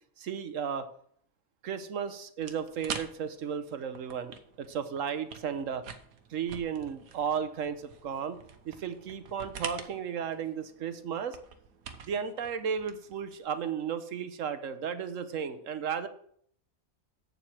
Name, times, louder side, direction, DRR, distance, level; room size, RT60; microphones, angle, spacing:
voice 1, 0.2-0.9 1.6-5.8 6.3-8.4 8.7-11.4 12.0-16.1, right 7 dB, 65° right, 11 dB, 1.2 m, -34 dB
sound 1, 2.4-13.5, right 6 dB, 90° right, 1.3 m, -46 dB
7.9 x 7.2 x 6.1 m, 0.62 s
omnidirectional pair, 1.5 m